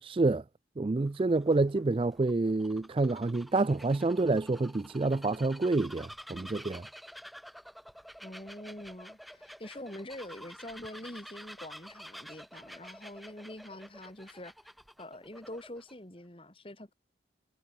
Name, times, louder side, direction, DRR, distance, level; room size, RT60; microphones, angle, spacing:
voice 1, 0.0-0.4 0.8-6.8, right 3 dB, 30° right, 0.4 m, -28 dB
Bird vocalization bird call bird song, 0.9-15.9, equal, ahead, 2.3 m, -50 dB
voice 2, 8.2-14.7 15.0-16.9, left 1 dB, 30° left, 2.4 m, -45 dB
head